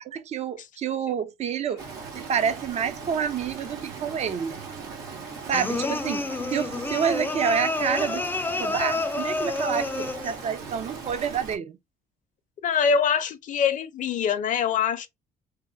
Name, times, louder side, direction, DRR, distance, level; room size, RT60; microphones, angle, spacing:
voice 1, 0.1-1.8 2.1-4.6 5.5-8.3 8.6-11.8, right 7 dB, 40° right, 0.5 m, -28 dB
Stream, 1.8-11.6, right 5 dB, 85° right, 1.5 m, -39 dB
sound 1, 5.5-10.4, left 2 dB, 10° left, 0.4 m, -29 dB
voice 2, 12.6-15.1, left 6 dB, 50° left, 0.6 m, -24 dB
3.5 x 2.1 x 2.4 m
cardioid pair, 110°, 17 cm